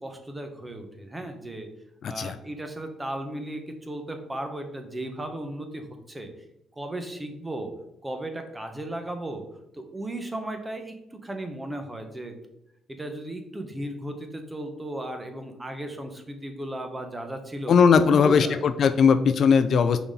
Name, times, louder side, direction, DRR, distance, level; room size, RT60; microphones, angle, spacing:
voice 1, 0.0-1.7 2.1-6.3 6.8-7.7 8.0-9.4 9.7-12.4 12.9-17.7 18.1-18.6, right 1 dB, 15° right, 5 dB, 1.1 m, -35 dB
voice 2, 2.0-2.4 17.7-20.0, left 6 dB, 60° left, 11 dB, 0.4 m, -19 dB
5.7 x 4.1 x 4.0 m, 0.84 s
cardioid pair, 90°, 0 cm